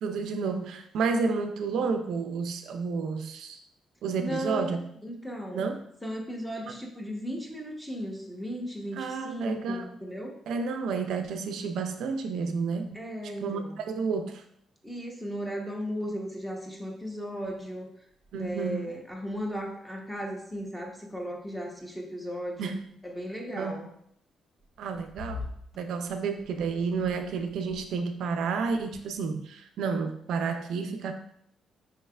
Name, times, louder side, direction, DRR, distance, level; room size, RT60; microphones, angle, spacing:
voice 1, 0.0-3.6 4.0-4.9 5.5-5.8 9.0-9.9 10.5-12.9 13.4-14.4 18.3-18.9 22.6-22.9 23.6-23.8 24.8-25.5 25.8-31.1, right 5 dB, 75° right, 7 dB, 0.3 m, -30 dB
voice 2, 4.2-4.8 5.0-5.6 6.0-10.3 12.9-13.8 14.8-17.9 18.3-22.8 23.0-23.9, equal, 5° left, 0 dB, 0.8 m, -36 dB
sound 1, 17.4-17.7 18.0-19.7 20.5-20.9 21.2-21.4 22.2-23.2 24.6-28.1 28.5-29.5, left 3 dB, 20° right, 1.0 m, -46 dB
4.6 x 3.2 x 2.3 m, 0.69 s
cardioid pair, 90°, 0 cm